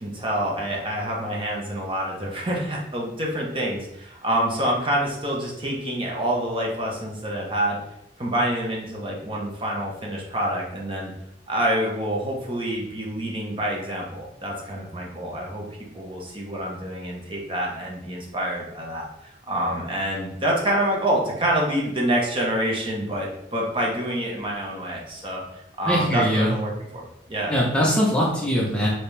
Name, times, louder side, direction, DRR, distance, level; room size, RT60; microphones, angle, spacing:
voice 1, 0.0-7.8 8.2-11.1 11.5-15.6 15.9-19.1 19.5-25.4 25.8-27.5, right 1 dB, 30° right, -2 dB, 0.8 m, -27 dB
voice 2, 25.8-26.5 27.5-28.9, equal, 5° left, -4 dB, 0.8 m, -21 dB
4.9 x 2.9 x 3.3 m, 0.82 s
head